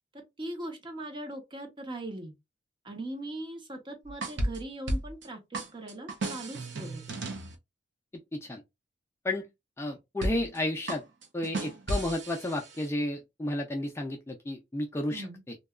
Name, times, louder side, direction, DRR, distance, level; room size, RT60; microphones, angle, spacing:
voice 1, 0.1-2.3 2.8-7.2 15.1-15.4, right 1 dB, 25° right, 0.7 m, -40 dB
sound 1, 4.0-5.3 5.5-7.6 10.2-10.6 10.9-12.9, right 1 dB, 65° right, 0.6 m, -34 dB
voice 2, 8.3-8.6 9.2-9.5 9.8-11.0 11.3-15.6, left 1 dB, 15° left, 0.3 m, -32 dB
2.7 x 2.2 x 2.2 m
head